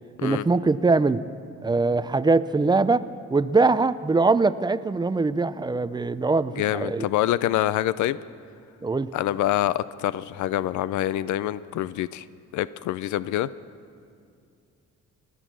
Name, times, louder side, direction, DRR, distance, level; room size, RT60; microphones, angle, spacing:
voice 1, 0.2-1.2 1.6-3.0 3.3-7.1 8.8-9.1, right 3 dB, 15° right, 15 dB, 0.4 m, -22 dB
voice 2, 6.5-8.2 9.1-12.3 12.5-13.5, left 13 dB, 75° left, 17 dB, 0.5 m, -26 dB
19.0 x 11.0 x 6.2 m, 2.4 s
cardioid pair, 90°, 30 cm